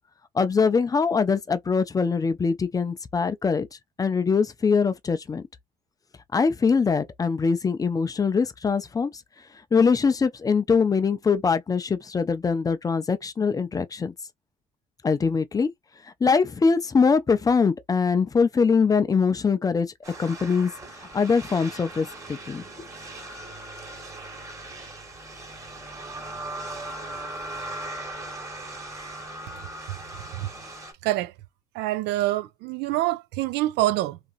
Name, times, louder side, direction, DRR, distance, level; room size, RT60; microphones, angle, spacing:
voice 1, 0.3-3.7 4.0-5.5 6.3-9.1 9.7-14.1 15.0-15.7 16.2-19.9 20.2-20.7 21.1-22.6, left 5 dB, 20° left, 0.4 m, -22 dB
sound 1, 20.0-30.9, right 2 dB, 20° right, 1.3 m, -39 dB
voice 2, 29.9-30.5 31.0-31.3 31.7-34.2, right 16 dB, 85° right, 0.4 m, -26 dB
2.8 x 2.5 x 2.5 m
cardioid pair, 110°, 17 cm